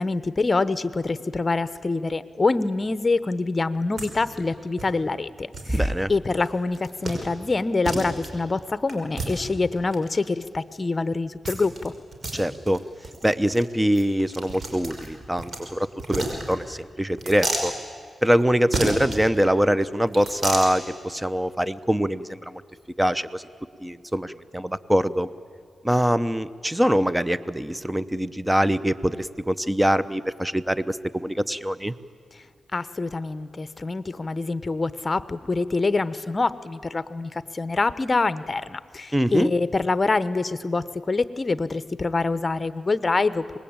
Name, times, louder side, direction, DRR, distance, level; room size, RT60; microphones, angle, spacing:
voice 1, 0.0-5.8 6.1-11.9 32.7-43.6, left 3 dB, 35° left, 14 dB, 0.9 m, -25 dB
sound 1, 4.0-4.1 4.4-4.5 4.8-4.9 5.5-5.8 6.3-6.5 6.7-7.2 7.5-7.6 7.8-8.3 8.9-10.2 11.4-11.9 12.1-12.4 12.7-12.8 13.0-13.2 13.5-13.6 13.9-15.6 16.0-16.8 17.2-17.7 18.7-19.2 20.1-20.7, right 2 dB, 55° right, 5.3 m, -30 dB
voice 2, 5.7-6.1 12.3-12.8 13.2-17.7 18.2-22.6 23.0-23.4 23.8-25.3 25.8-31.9 39.1-39.5, equal, 10° right, 15 dB, 0.8 m, -23 dB
25.0 x 20.5 x 8.9 m, 2.1 s
cardioid pair, 65°, 0 cm